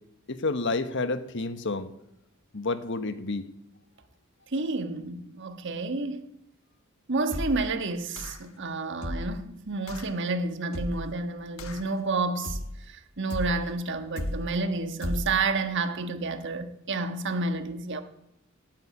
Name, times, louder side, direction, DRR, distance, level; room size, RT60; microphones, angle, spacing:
voice 1, 0.3-1.9 2.5-3.5, left 3 dB, 60° left, 1.2 m, -29 dB
voice 2, 4.5-6.3 7.1-12.6 12.9-18.0, right 3 dB, 60° right, 1.5 m, -30 dB
sound 1, 7.3-7.7 8.2-8.6 9.0-9.4 9.9-10.2 10.7-11.2 11.6-12.0 12.4-12.9 13.3-13.7 14.2-14.6 15.0-15.4, left 1 dB, 80° left, 1.3 m, -34 dB
17.5 x 9.3 x 8.6 m
head